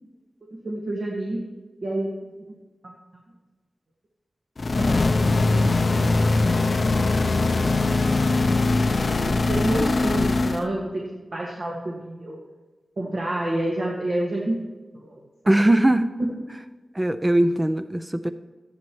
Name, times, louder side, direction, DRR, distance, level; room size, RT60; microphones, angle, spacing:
voice 1, 0.6-1.4 1.8-2.3 2.8-2.9 4.8-5.1 6.2-6.3 8.9-10.9 11.3-12.4 13.0-14.6 14.9-15.8, right 1 dB, 65° right, -3 dB, 1.7 m, -28 dB
sound 1, 4.6-10.7, left 3 dB, 55° left, 0.5 m, -21 dB
voice 2, 15.5-16.1 17.0-18.3, right 1 dB, 20° right, 9 dB, 0.4 m, -20 dB
13.5 x 10.5 x 3.1 m, 1.2 s
wide cardioid pair, 65°, 0 cm